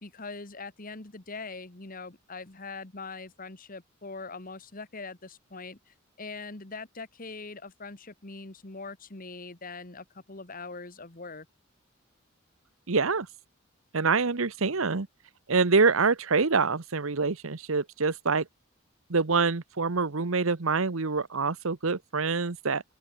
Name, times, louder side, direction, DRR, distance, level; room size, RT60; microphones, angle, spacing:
voice 1, 0.0-11.5, left 3 dB, 40° left, 1.7 m, -42 dB
voice 2, 12.9-13.3 13.9-15.1 15.5-18.5 19.1-22.8, right 4 dB, 75° right, 1.1 m, -25 dB
open air
head